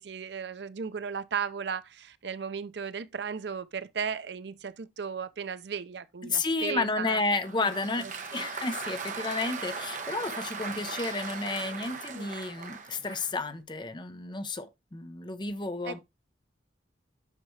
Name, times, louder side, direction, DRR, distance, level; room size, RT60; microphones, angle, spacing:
voice 1, 0.0-7.2 7.6-7.7 8.0-8.4 12.1-12.3 15.9-16.0, right 6 dB, 70° right, 0.5 m, -36 dB
voice 2, 6.2-16.0, left 3 dB, 25° left, 0.6 m, -32 dB
Applause, 7.2-13.4, right 4 dB, 45° right, 1.1 m, -38 dB
9.1 x 5.9 x 3.1 m
head